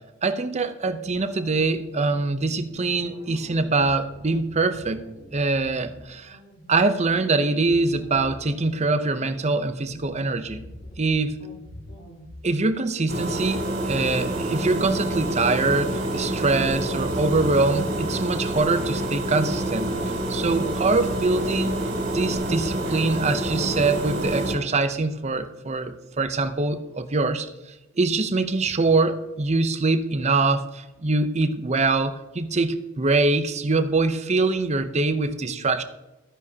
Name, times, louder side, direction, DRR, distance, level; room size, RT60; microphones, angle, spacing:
voice 1, 0.2-5.0 5.3-6.4 6.7-10.6 11.0-11.4 12.4-21.8 22.1-27.5 28.0-35.8, right 3 dB, 30° right, 10 dB, 0.7 m, -24 dB
sound 1, 1.0-12.4, equal, 65° left, 4.2 m, -45 dB
sound 2, 13.1-24.5, right 1 dB, 50° right, 3.3 m, -27 dB
13.0 x 10.0 x 2.8 m, 1.1 s
head